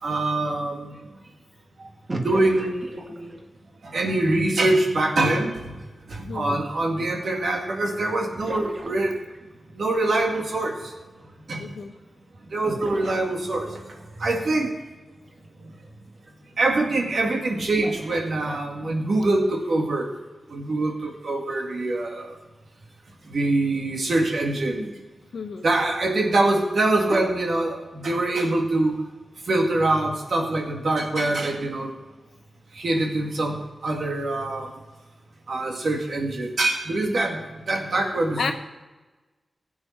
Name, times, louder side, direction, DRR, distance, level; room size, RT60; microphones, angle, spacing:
voice 1, 0.0-1.0 1.8-1.9 2.2-3.4 3.8-5.8 6.1-9.2 9.7-10.9 11.5-11.7 12.5-14.8 15.6-15.7 16.6-20.1 20.5-22.4 23.3-24.9 25.6-29.0 29.5-31.9 32.7-34.7 35.5-38.5, right 2 dB, 70° right, 2 dB, 2.2 m, -24 dB
sound 1, 2.1-3.6 7.5-7.6 8.3-9.5 12.7-13.9 15.3-15.4 15.8-15.9 17.6-18.8, right 2 dB, 40° right, 1.6 m, -36 dB
voice 2, 6.2-6.6 11.6-11.9 25.3-25.6 38.4-38.5, left 5 dB, 80° left, 6 dB, 1.1 m, -31 dB
15.5 x 8.7 x 4.5 m, 1.2 s
cardioid pair, 50°, 0 cm